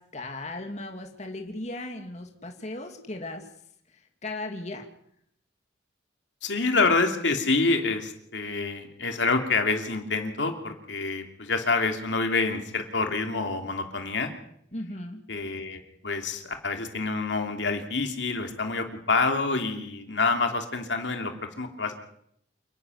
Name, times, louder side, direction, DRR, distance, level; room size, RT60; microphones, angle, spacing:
voice 1, 0.0-3.5 3.9-4.9 14.7-15.2, left 2 dB, 40° left, 4 dB, 2.6 m, -37 dB
voice 2, 6.4-14.3 15.3-21.9, left 3 dB, 75° left, 5 dB, 2.8 m, -27 dB
28.5 x 10.5 x 9.7 m, 0.70 s
head